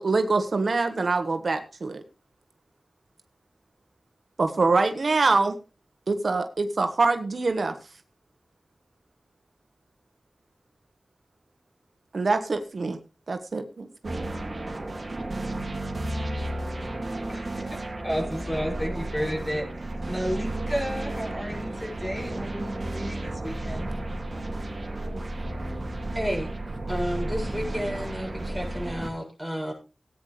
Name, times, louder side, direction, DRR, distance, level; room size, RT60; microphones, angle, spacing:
voice 1, 0.0-2.0 4.4-5.5 6.1-7.8 12.1-13.0 13.3-14.3, right 3 dB, 75° right, 8 dB, 1.3 m, -24 dB
sound 1, 14.0-29.1, right 1 dB, 50° right, 3.0 m, -33 dB
voice 2, 17.3-17.8 18.0-19.6 20.0-23.9, equal, 20° left, 0 dB, 6.4 m, -32 dB
voice 3, 26.1-26.5 26.9-29.7, equal, ahead, 0 dB, 7.3 m, -31 dB
18.0 x 9.4 x 3.3 m, 0.31 s
wide cardioid pair, 60°, 0 cm